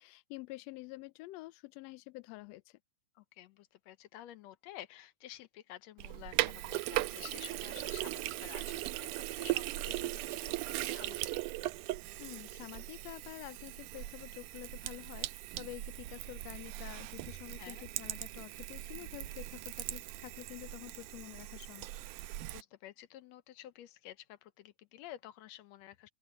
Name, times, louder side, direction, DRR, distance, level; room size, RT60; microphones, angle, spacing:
voice 1, 0.0-2.8 12.2-21.9, left 20 dB, 90° left, 1.5 m, -48 dB
voice 2, 3.2-11.4 17.6-17.9 22.5-26.1, left 13 dB, 70° left, 1.8 m, -51 dB
Sink (filling or washing), 6.0-22.6, right 16 dB, 80° right, 2.3 m, -39 dB
open air
omnidirectional pair, 3.6 m